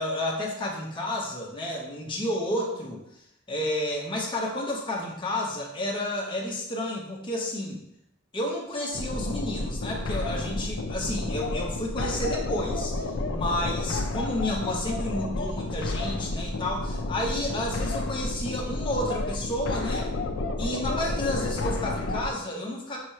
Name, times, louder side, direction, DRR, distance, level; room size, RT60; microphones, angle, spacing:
voice 1, 0.0-3.0 3.5-7.8 8.3-20.1 20.6-23.0, left 1 dB, 25° left, -2 dB, 0.9 m, -31 dB
sound 1, 8.9-22.3, left 2 dB, 65° left, 0.5 m, -31 dB
5.5 x 3.0 x 3.0 m, 0.76 s
head